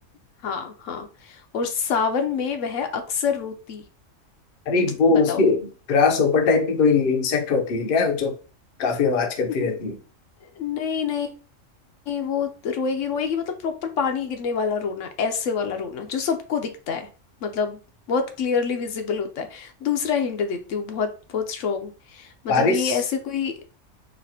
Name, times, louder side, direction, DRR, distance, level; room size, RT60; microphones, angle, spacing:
voice 1, 0.4-3.9 5.1-5.4 9.5-9.7 10.6-11.3 12.1-17.1 17.4-17.8 18.1-23.5, left 6 dB, 75° left, 1.0 m, -27 dB
voice 2, 4.7-5.6 5.9-8.3 8.8-10.0 22.5-23.0, left 4 dB, 50° left, 0.7 m, -20 dB
4.1 x 2.5 x 2.7 m
omnidirectional pair, 1.3 m